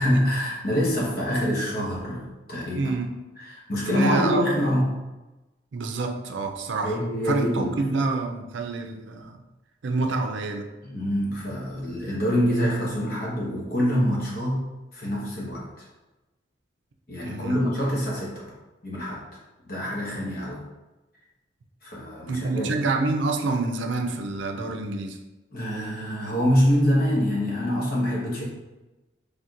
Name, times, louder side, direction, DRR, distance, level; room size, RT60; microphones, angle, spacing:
voice 1, 0.0-2.9 3.4-5.0 6.8-7.8 10.8-14.7 14.9-15.6 17.1-18.3 18.8-19.2 19.6-20.6 21.8-22.7 25.5-28.4, equal, 50° left, -4 dB, 1.1 m, -25 dB
voice 2, 2.7-3.1 3.9-4.6 5.7-9.4 9.8-10.7 17.2-17.6 22.3-25.2, right 3 dB, 75° right, 4 dB, 0.5 m, -27 dB
4.3 x 3.4 x 2.5 m, 1.1 s
head